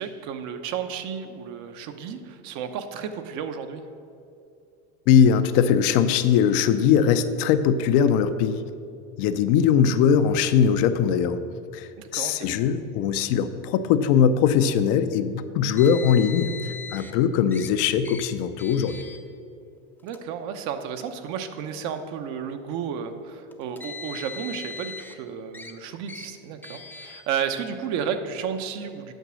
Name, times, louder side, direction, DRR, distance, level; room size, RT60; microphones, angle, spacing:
voice 1, 0.0-3.8 12.0-12.5 20.0-29.1, right 7 dB, 55° right, 8 dB, 0.9 m, -32 dB
voice 2, 5.1-8.6 9.2-11.4 11.7-16.6 16.9-19.0, left 8 dB, 60° left, 10 dB, 0.6 m, -21 dB
Car, 15.8-17.1 17.5-17.7 18.0-18.2 18.6-19.2 20.0-20.2 21.1-21.2 23.5-25.2 25.5-25.7 26.1-26.3 26.6-27.2, left 3 dB, 5° left, 0.5 m, -39 dB
9.1 x 5.8 x 6.3 m, 2.5 s
supercardioid pair, 130°, 34 cm